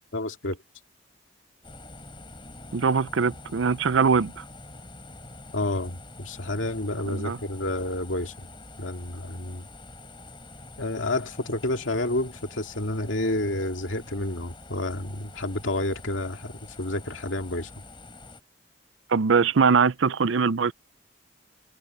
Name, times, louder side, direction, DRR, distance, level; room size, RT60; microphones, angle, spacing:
voice 1, 0.1-0.6 5.5-8.5 8.8-9.7 10.8-16.5 16.8-17.7, left 1 dB, 85° left, 2.4 m, -29 dB
sound 1, 1.6-18.4, left 2 dB, 25° left, 5.4 m, -46 dB
voice 2, 2.7-4.4 7.1-7.4 19.1-20.7, right 5 dB, 80° right, 0.6 m, -22 dB
head